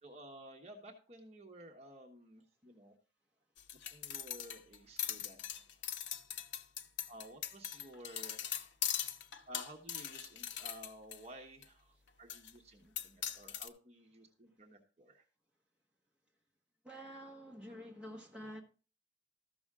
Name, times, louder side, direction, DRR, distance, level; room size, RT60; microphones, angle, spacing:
voice 1, 0.0-2.9 3.9-5.4 6.8-8.6 9.5-15.2, right 1 dB, 35° right, 1.2 m, -54 dB
sound 1, 3.6-11.2 11.6-11.7 12.3-12.5 13.0-13.7, left 9 dB, 85° left, 0.7 m, -40 dB
voice 2, 16.8-18.6, equal, 5° right, 1.3 m, -48 dB
13.5 x 6.1 x 3.6 m
head